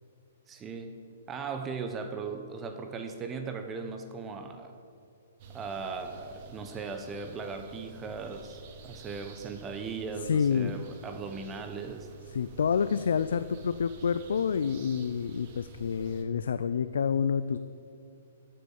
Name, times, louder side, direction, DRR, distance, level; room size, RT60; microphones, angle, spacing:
voice 1, 0.5-4.8 5.5-12.1, right 5 dB, 20° right, 6 dB, 0.8 m, -38 dB
sound 1, 5.4-16.2, right 3 dB, 45° right, 1.5 m, -50 dB
voice 2, 10.2-10.7 12.3-17.6, left 6 dB, 75° left, 12 dB, 0.4 m, -28 dB
14.5 x 6.8 x 7.1 m, 2.5 s
hypercardioid pair, 135°, 0 cm